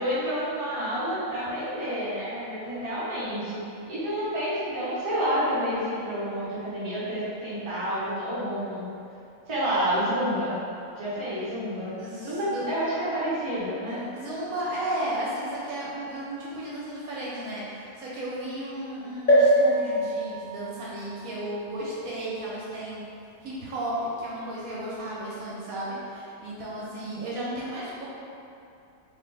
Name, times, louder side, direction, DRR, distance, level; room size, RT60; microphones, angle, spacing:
voice 1, 0.0-3.6 3.9-8.9 9.5-10.6 10.9-11.9 12.2-14.0 26.7-27.2, equal, 25° right, -10 dB, 0.8 m, -29 dB
voice 2, 12.0-12.7 13.9-23.1 23.4-28.0, right 1 dB, 70° right, -6 dB, 1.1 m, -34 dB
sound 1, 19.3-22.9 23.5-23.6 23.8-23.9, equal, 35° left, 1.2 m, -25 dB
4.0 x 2.8 x 3.3 m, 2.7 s
omnidirectional pair, 1.6 m